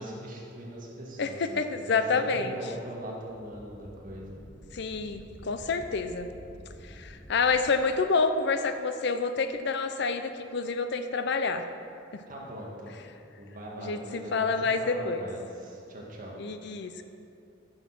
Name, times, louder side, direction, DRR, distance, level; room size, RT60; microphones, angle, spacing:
voice 1, 0.0-4.4 12.3-13.0 13.4-16.4, equal, 45° right, -3 dB, 2.0 m, -41 dB
voice 2, 1.2-2.5 4.7-6.3 6.8-11.7 12.1-12.2 13.8-15.2 16.4-17.0, left 4 dB, 65° left, 9 dB, 0.6 m, -28 dB
sound 1, 3.1-7.9, equal, 15° left, 2.2 m, -49 dB
10.5 x 6.4 x 6.0 m, 2.6 s
head